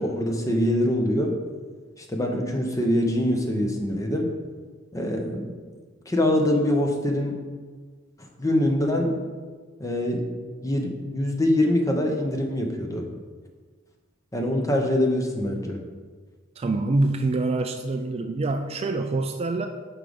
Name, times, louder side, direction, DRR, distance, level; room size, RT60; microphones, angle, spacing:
voice 1, 0.0-1.4 2.0-4.3 4.9-5.5 6.1-7.4 8.2-9.1 9.8-10.3 10.6-13.1 14.3-15.8, left 1 dB, 15° left, 2 dB, 0.8 m, -24 dB
voice 2, 16.6-19.7, right 2 dB, 30° right, 6 dB, 0.3 m, -25 dB
5.8 x 4.8 x 5.1 m, 1.5 s
head